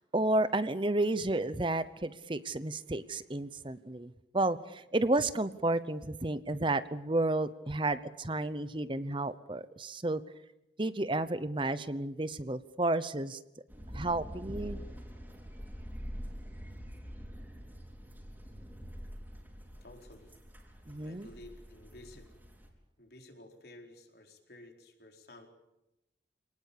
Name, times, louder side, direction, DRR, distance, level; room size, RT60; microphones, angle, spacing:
voice 1, 0.0-10.2 10.8-13.4 13.9-14.8 20.9-21.3, right 2 dB, 30° right, 14 dB, 0.9 m, -31 dB
sound 1, 13.7-22.7, equal, 10° right, 4.5 m, -45 dB
voice 2, 19.8-20.4 21.0-22.3 23.0-25.5, left 1 dB, 65° left, 3 dB, 4.5 m, -53 dB
27.5 x 19.0 x 8.6 m, 0.89 s
head